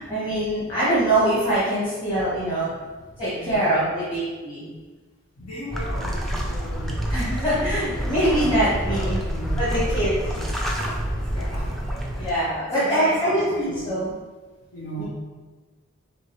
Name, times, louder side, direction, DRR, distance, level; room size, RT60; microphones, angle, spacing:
voice 1, 0.0-2.7 3.2-4.7 7.1-9.2 9.6-10.1 10.7-10.8 12.2-14.1 15.0-15.1, right 1 dB, 20° left, -11 dB, 1.0 m, -23 dB
voice 2, 3.3-3.7 5.4-10.5 10.8-12.4 12.7-14.0 14.7-15.0, equal, 80° left, -9 dB, 0.9 m, -37 dB
sound 1, 5.7-12.3, equal, ahead, 0.3 m, -27 dB
4.7 x 3.2 x 3.0 m, 1.3 s
head